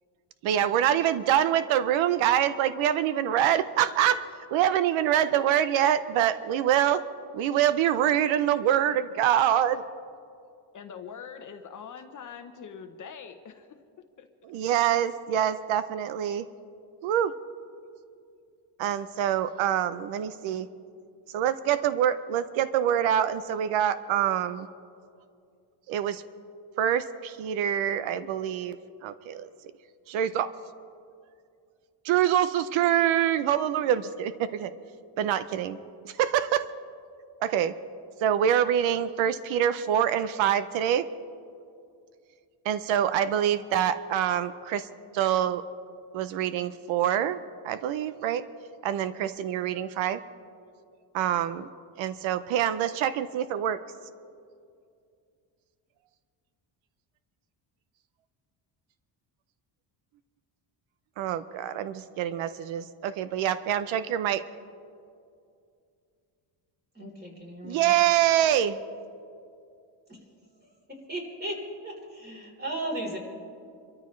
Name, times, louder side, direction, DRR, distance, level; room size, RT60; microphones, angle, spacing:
voice 1, 0.4-4.2 4.5-7.0 7.3-9.8 14.5-16.4 17.0-17.3 18.8-20.7 21.3-24.7 25.9-26.2 26.8-28.8 29.0-29.5 30.1-30.5 32.0-34.7 35.2-35.8 36.0-36.7 37.4-37.7 38.2-41.1 42.7-44.9 45.1-45.6 46.1-47.4 47.6-48.4 48.8-50.2 51.1-51.7 52.0-53.8 61.2-64.4 67.6-68.8, right 10 dB, 80° right, 13 dB, 0.7 m, -25 dB
voice 2, 10.7-13.7 14.2-14.3, left 7 dB, 40° left, 6 dB, 0.9 m, -43 dB
voice 3, 67.0-67.9 70.9-73.2, right 1 dB, 20° right, -1 dB, 3.8 m, -36 dB
27.0 x 13.5 x 3.2 m, 2.4 s
cardioid pair, 150°, 46 cm